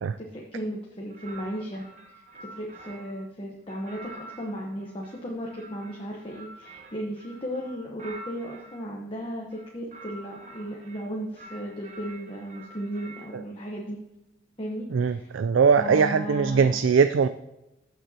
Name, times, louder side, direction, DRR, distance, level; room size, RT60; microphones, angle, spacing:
voice 1, 0.2-1.9 2.4-14.0 14.6-15.3 15.8-16.7, equal, 30° left, -1 dB, 1.0 m, -35 dB
sound 1, 1.1-3.2 3.7-8.8 9.4-11.0 11.4-13.3, right 2 dB, 40° right, 1.2 m, -47 dB
voice 2, 14.9-17.3, right 6 dB, 85° right, 11 dB, 0.4 m, -21 dB
14.5 x 6.3 x 2.8 m, 0.94 s
head